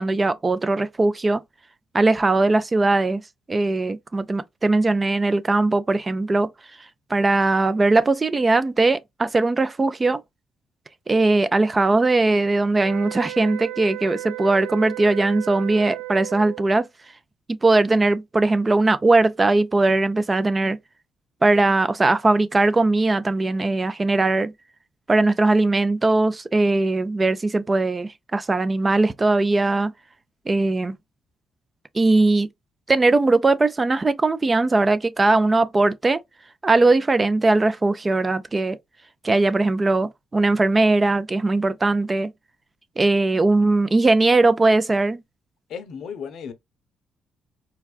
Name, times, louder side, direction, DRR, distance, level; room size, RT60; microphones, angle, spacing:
voice 1, 0.0-1.4 1.9-3.2 3.5-6.5 7.1-10.2 11.1-16.8 17.5-20.8 21.4-24.5 25.1-29.9 30.5-31.0 31.9-32.5 32.9-36.2 36.6-38.8 39.2-42.3 43.0-45.2, right 2 dB, 25° right, 0.4 m, -20 dB
sound 1, 12.8-16.7, right 19 dB, 85° right, 0.4 m, -34 dB
voice 2, 45.7-46.5, left 7 dB, 70° left, 0.6 m, -34 dB
4.4 x 2.3 x 2.4 m
cardioid pair, 90°, 0 cm